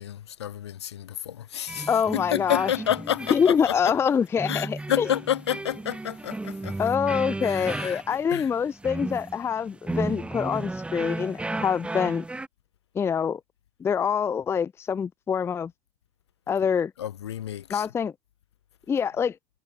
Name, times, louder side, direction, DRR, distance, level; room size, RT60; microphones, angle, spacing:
voice 1, 0.0-3.9 4.4-6.9 7.4-8.0 8.3-8.5 16.6-16.7 17.0-17.9, left 10 dB, 75° left, 1.3 m, -30 dB
sound 1, 1.7-12.5, right 2 dB, 10° right, 0.9 m, -34 dB
voice 2, 1.9-2.7 3.3-5.1 6.8-12.2 13.0-13.4 13.8-15.7 16.5-16.9 17.7-18.1 18.9-19.4, left 7 dB, 20° left, 0.4 m, -25 dB
figure-of-eight pair, 80°, 14 cm